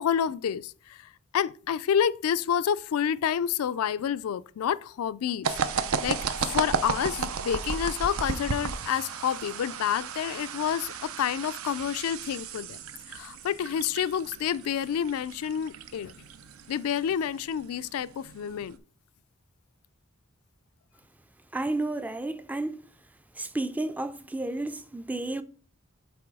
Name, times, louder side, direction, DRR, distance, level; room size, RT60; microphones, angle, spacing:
voice 1, 0.0-12.8 13.1-16.1 16.7-18.8, left 8 dB, 90° left, 0.3 m, -29 dB
sound 1, 5.4-18.8, right 5 dB, 80° right, 0.6 m, -34 dB
voice 2, 21.5-22.8 23.4-25.4, right 2 dB, 5° right, 0.3 m, -31 dB
7.8 x 3.0 x 4.7 m
head